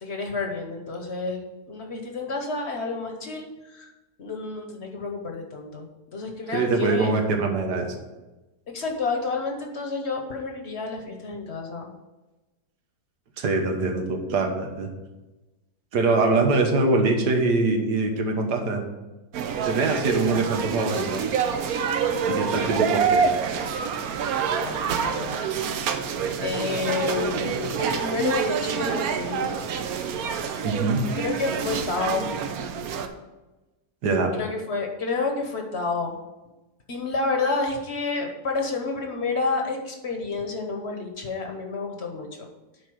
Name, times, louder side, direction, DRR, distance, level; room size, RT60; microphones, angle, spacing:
voice 1, 0.0-3.9 4.2-5.9 6.1-7.1 8.7-11.9 20.1-20.2 24.2-24.3 24.6-25.3 26.4-29.5 30.0-30.1 31.1-32.2 34.3-36.2 36.9-42.5, left 3 dB, 45° left, 3 dB, 1.2 m, -29 dB
voice 2, 6.5-7.9 13.4-14.9 15.9-18.8 19.7-21.2 22.3-23.2 30.6-31.0 34.0-34.3, right 3 dB, 90° right, 3 dB, 1.8 m, -23 dB
sound 1, 19.3-33.1, right 6 dB, 70° right, 1.1 m, -27 dB
9.8 x 4.1 x 6.2 m, 1.1 s
omnidirectional pair, 1.7 m